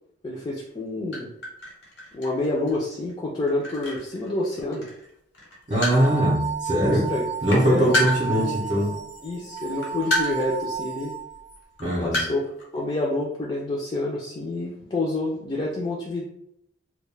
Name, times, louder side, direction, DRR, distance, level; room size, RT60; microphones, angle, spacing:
voice 1, 0.2-1.3 2.1-4.9 6.8-7.3 7.6-7.9 8.3-8.6 9.2-11.1 12.0-12.4 12.7-16.3, left 2 dB, 25° left, -4 dB, 0.3 m, -28 dB
sound 1, 0.8-0.9 1.1-5.1 5.3-6.3 6.8-6.9 7.2-8.9 9.5-10.5 10.8-10.9 11.6-12.8, left 1 dB, 85° left, 1.0 m, -30 dB
sound 2, 5.7-11.6, right 6 dB, 65° left, 0.6 m, -32 dB
voice 2, 5.7-7.1 7.4-8.9 11.8-12.2, equal, 35° right, -7 dB, 0.5 m, -22 dB
2.2 x 2.1 x 3.1 m, 0.76 s
head